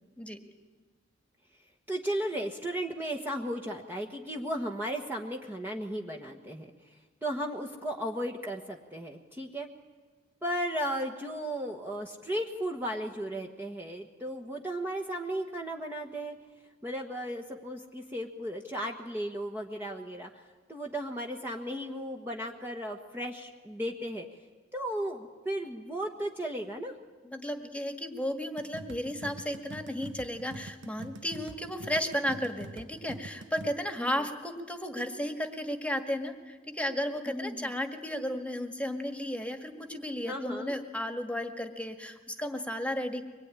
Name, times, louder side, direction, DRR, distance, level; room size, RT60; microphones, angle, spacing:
voice 1, 1.9-6.7 7.2-9.7 10.4-16.4 16.8-20.4 20.7-24.3 24.7-26.9 34.0-34.2 37.2-37.7 40.3-40.7, equal, 10° right, 1 dB, 1.4 m, -35 dB
voice 2, 27.2-43.3, equal, 5° left, 6 dB, 1.9 m, -34 dB
sound 1, 28.6-33.7, right 2 dB, 70° right, 1.1 m, -45 dB
24.5 x 21.0 x 9.9 m, 1.4 s
head